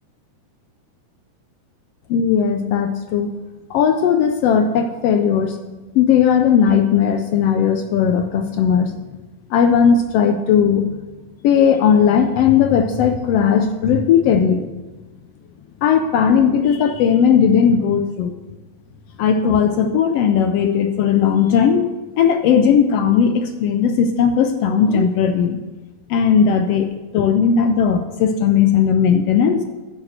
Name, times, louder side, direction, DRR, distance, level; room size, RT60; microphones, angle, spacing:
voice 1, 2.1-3.3 3.7-5.6 5.9-8.9 9.5-10.9 11.4-14.7 15.8-18.4 19.2-25.6 26.1-29.6, left 7 dB, 80° left, 6 dB, 1.4 m, -17 dB
10.5 x 6.7 x 7.5 m, 1.2 s
omnidirectional pair, 3.4 m